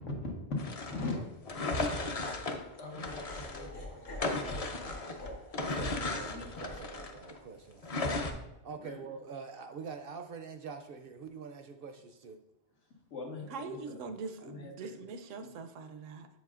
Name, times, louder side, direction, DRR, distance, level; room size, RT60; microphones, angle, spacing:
voice 1, 0.1-1.1 2.8-6.5 8.7-9.0 13.1-14.0 14.4-14.7 15.3-15.5, left 3 dB, 80° left, 0 dB, 1.7 m, -42 dB
sound 1, 0.6-3.7 4.1-7.4 7.8-8.3, left 2 dB, 40° left, 0.6 m, -35 dB
Laughter, 2.9-9.1, left 1 dB, 55° left, 1.5 m, -48 dB
voice 2, 5.6-7.9 8.6-12.4, right 5 dB, 60° right, 6 dB, 0.6 m, -45 dB
voice 3, 13.4-16.3, right 4 dB, 85° right, 8 dB, 1.0 m, -43 dB
7.5 x 7.1 x 2.4 m, 0.93 s
omnidirectional pair, 1.2 m